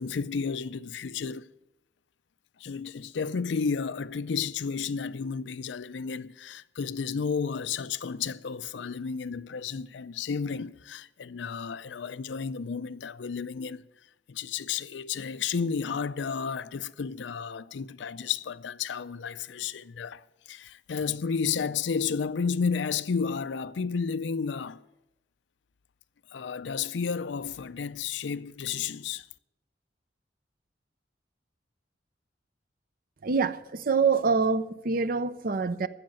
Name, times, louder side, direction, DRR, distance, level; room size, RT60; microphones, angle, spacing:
voice 1, 0.0-1.5 2.6-13.9 14.3-24.8 26.3-29.3, left 6 dB, 75° left, 0.5 m, -32 dB
voice 2, 33.2-35.9, right 5 dB, 50° right, 0.6 m, -25 dB
15.0 x 6.5 x 8.9 m
head